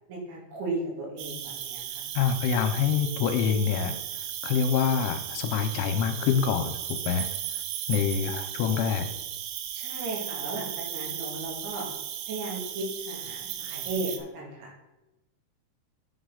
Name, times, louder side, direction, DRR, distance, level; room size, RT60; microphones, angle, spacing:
voice 1, 0.1-2.1 9.7-11.9 12.3-14.7, right 2 dB, 70° right, -2 dB, 4.5 m, -35 dB
Cricket, 1.2-14.2, right 10 dB, 90° right, 3.4 m, -36 dB
voice 2, 2.2-4.0 4.4-7.3 7.9-9.1, left 7 dB, 90° left, 7 dB, 3.1 m, -26 dB
10.0 x 6.2 x 3.9 m, 1.0 s
omnidirectional pair, 5.6 m